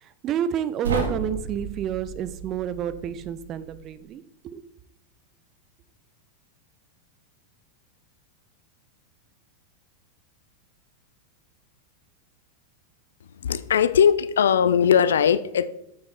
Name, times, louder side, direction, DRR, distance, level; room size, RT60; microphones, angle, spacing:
voice 1, 0.0-4.6, right 9 dB, 35° right, 14 dB, 0.7 m, -30 dB
sound 1, 0.8-3.9, right 4 dB, 70° right, 1.6 m, -33 dB
voice 2, 13.4-15.7, left 8 dB, 65° left, 16 dB, 0.5 m, -19 dB
8.6 x 7.9 x 4.3 m, 0.82 s
figure-of-eight pair, 90°, 0 cm